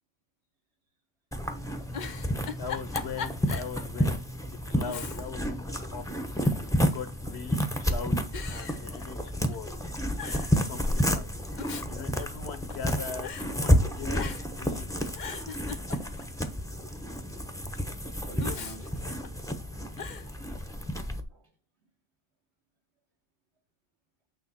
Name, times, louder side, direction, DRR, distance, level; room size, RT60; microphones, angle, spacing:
sound 1, 1.3-21.2, equal, 5° left, 0.9 m, -30 dB
Giggle, 1.9-3.8 4.1-4.2 4.8-5.5 5.8-6.6 7.4-7.8 8.3-9.6 9.8-9.9 10.2-10.6 11.4-12.9 13.2-13.5 14.1-14.6 15.0-16.4 18.4-19.5 20.0-20.3, left 6 dB, 45° left, 0.7 m, -40 dB
voice 1, 2.6-6.4 6.8-9.8 10.5-11.3 11.9-14.9, left 6 dB, 65° left, 1.3 m, -41 dB
voice 2, 18.2-19.1 21.2-21.5, right 3 dB, 65° right, 2.6 m, -49 dB
8.9 x 3.5 x 5.9 m
omnidirectional pair, 1.2 m